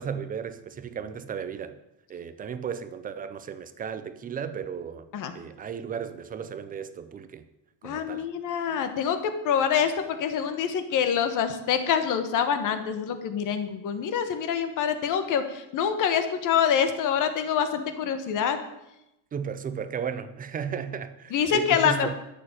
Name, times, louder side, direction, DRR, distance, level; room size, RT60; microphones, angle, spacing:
voice 1, 0.0-1.8 2.1-5.0 5.3-7.4 7.8-8.3 19.3-22.2, right 7 dB, 20° right, 0.4 m, -35 dB
voice 2, 7.8-18.6 21.3-22.2, left 8 dB, 40° left, 1.4 m, -26 dB
13.0 x 7.0 x 8.8 m
cardioid pair, 180°, 50 cm